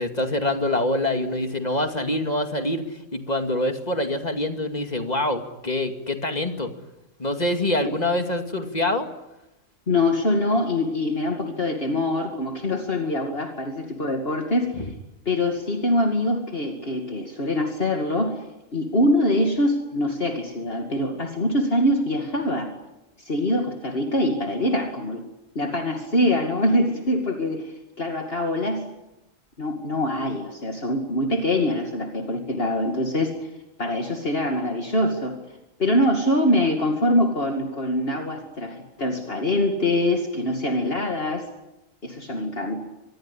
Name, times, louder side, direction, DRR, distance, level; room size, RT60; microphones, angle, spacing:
voice 1, 0.0-2.8 3.1-6.7 7.2-9.1, left 1 dB, 30° left, 6 dB, 2.4 m, -25 dB
voice 2, 9.9-14.9 15.3-18.4 18.7-22.7 23.2-25.2 25.5-28.8 29.6-33.3 33.8-35.4 35.8-41.5 42.0-42.8, left 1 dB, 45° left, 3 dB, 2.6 m, -24 dB
25.0 x 21.0 x 10.0 m, 0.94 s
omnidirectional pair, 1.4 m